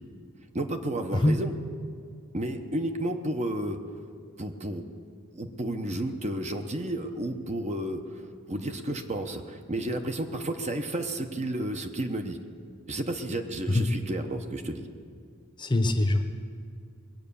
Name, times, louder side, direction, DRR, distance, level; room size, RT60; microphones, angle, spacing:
voice 1, 0.5-1.5 2.3-3.8 4.4-4.9 5.3-8.2 8.5-12.4 12.9-14.9, right 1 dB, 30° right, 6 dB, 0.9 m, -32 dB
voice 2, 15.6-16.2, left 1 dB, 20° left, 7 dB, 0.8 m, -23 dB
21.0 x 8.5 x 6.9 m, 2.2 s
head